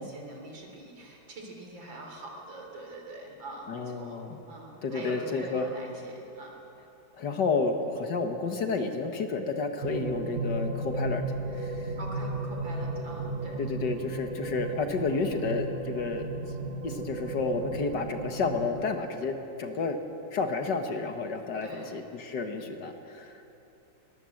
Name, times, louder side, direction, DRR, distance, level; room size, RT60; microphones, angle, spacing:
voice 1, 0.0-6.6 12.0-13.7 21.6-22.0, right 1 dB, 70° right, 1 dB, 4.1 m, -43 dB
voice 2, 3.7-4.4 4.8-5.7 7.2-11.2 11.5-12.0 13.6-16.3 16.8-20.0 20.3-23.4, left 4 dB, 60° left, 6 dB, 1.9 m, -31 dB
sound 1, 9.8-18.9, right 3 dB, 40° right, 0.9 m, -35 dB
21.5 x 19.0 x 7.7 m, 3.0 s
omnidirectional pair, 2.2 m